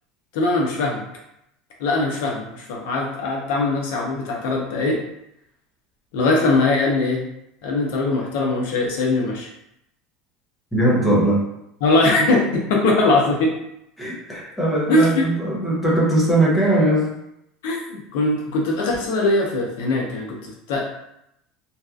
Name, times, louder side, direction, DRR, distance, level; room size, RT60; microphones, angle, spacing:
voice 1, 0.3-1.0 1.8-5.0 6.1-7.2 7.6-9.5 11.8-13.5 14.9-15.2 17.6-20.9, left 2 dB, 75° left, -1 dB, 0.6 m, -21 dB
voice 2, 10.7-11.5 14.0-17.2, right 1 dB, 5° left, -6 dB, 0.6 m, -20 dB
2.8 x 2.3 x 2.3 m, 0.81 s
cardioid pair, 175°, 0 cm